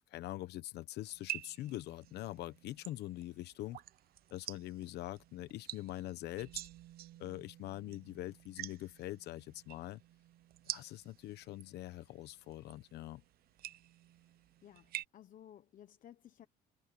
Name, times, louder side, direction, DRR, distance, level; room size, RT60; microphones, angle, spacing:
voice 1, 0.1-3.8 4.3-6.6 7.2-10.0 10.7-13.2, left 15 dB, 80° left, 1.1 m, -44 dB
sound 1, 1.1-15.0, right 14 dB, 65° right, 0.7 m, -49 dB
voice 2, 14.6-16.5, left 11 dB, 55° left, 1.1 m, -57 dB
cardioid pair, 110°, 17 cm